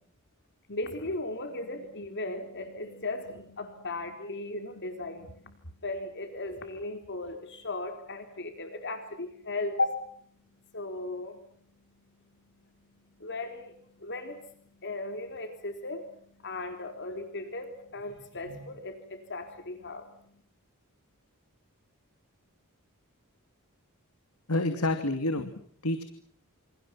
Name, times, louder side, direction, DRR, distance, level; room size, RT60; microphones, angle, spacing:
voice 1, 0.7-5.6 5.8-9.9 10.7-11.4 13.2-14.5 14.8-16.1 16.4-20.1, left 2 dB, 55° left, 7 dB, 3.9 m, -36 dB
voice 2, 24.5-26.0, left 2 dB, 80° left, 8 dB, 2.8 m, -29 dB
29.0 x 28.5 x 5.9 m, 0.63 s
head